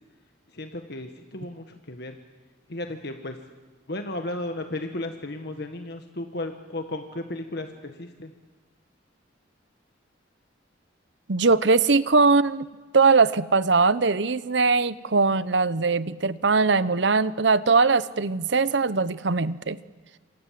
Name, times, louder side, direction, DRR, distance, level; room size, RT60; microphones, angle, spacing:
voice 1, 0.5-2.2 2.7-3.4 3.9-8.3, left 2 dB, 60° left, 5 dB, 1.7 m, -34 dB
voice 2, 11.3-12.7 12.9-19.8, right 4 dB, 65° right, 16 dB, 0.8 m, -21 dB
28.0 x 26.0 x 7.7 m, 1.3 s
head